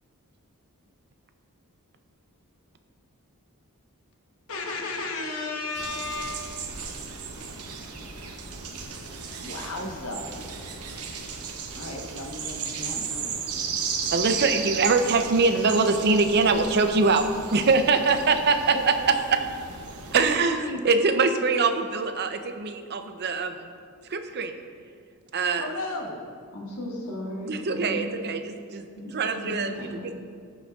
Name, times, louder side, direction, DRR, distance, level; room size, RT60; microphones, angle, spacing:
voice 1, 4.5-6.6 9.4-10.5 11.7-13.4 18.7-18.8 25.6-26.2, left 2 dB, 65° left, 1 dB, 1.1 m, -34 dB
sound 1, 5.7-20.4, right 5 dB, 75° right, 0.8 m, -35 dB
voice 2, 14.1-19.4 20.1-23.6 24.1-24.6 25.3-25.7 27.5-28.9 29.1-30.1, right 4 dB, 50° right, 8 dB, 0.5 m, -23 dB
voice 3, 26.5-28.0 28.9-29.2 29.4-30.1, left 1 dB, 80° left, -3 dB, 1.7 m, -35 dB
14.0 x 6.2 x 2.4 m, 2.2 s
head